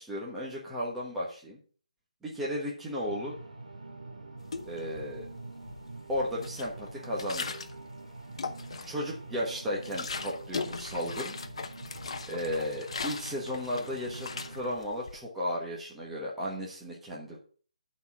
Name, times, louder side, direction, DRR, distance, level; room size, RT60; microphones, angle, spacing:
voice 1, 0.0-1.6 2.2-3.4 4.6-5.2 6.1-7.5 8.8-11.4 12.3-17.4, equal, 5° right, -6 dB, 1.3 m, -34 dB
sound 1, 3.0-14.8, right 2 dB, 80° right, 2.1 m, -45 dB
sound 2, 4.4-5.3 5.6-7.8 8.2-9.1 9.5-15.2, left 4 dB, 55° left, 0.8 m, -39 dB
10.0 x 4.2 x 5.9 m, 0.42 s
hypercardioid pair, 165°, 4 cm